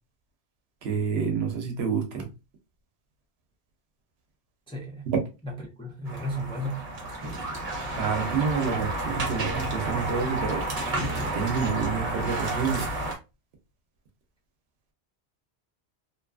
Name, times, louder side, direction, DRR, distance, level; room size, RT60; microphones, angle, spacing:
voice 1, 0.8-2.3 5.1-5.2 8.0-10.6 11.3-12.9, right 6 dB, 80° right, 0.9 m, -28 dB
voice 2, 4.7-5.1 5.4-6.9, equal, 5° left, 0.5 m, -34 dB
sound 1, 6.1-13.1, right 2 dB, 40° right, 0.8 m, -31 dB
2.7 x 2.3 x 2.3 m
omnidirectional pair, 1.1 m